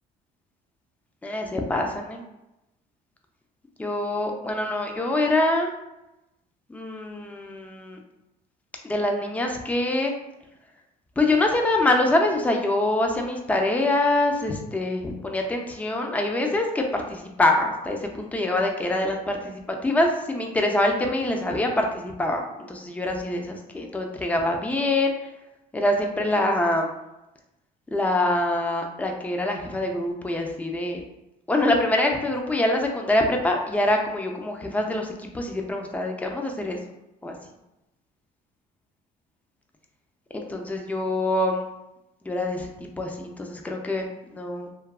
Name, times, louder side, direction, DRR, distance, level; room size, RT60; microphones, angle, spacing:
voice 1, 1.2-2.2 3.8-5.7 6.7-8.0 8.8-10.1 11.2-25.1 25.7-26.9 27.9-31.0 31.5-36.8 37.2-37.3 40.3-41.7 42.3-44.0 44.3-44.7, left 1 dB, 10° left, 2 dB, 0.4 m, -25 dB
2.7 x 2.3 x 2.3 m, 0.93 s
cardioid pair, 110°, 17 cm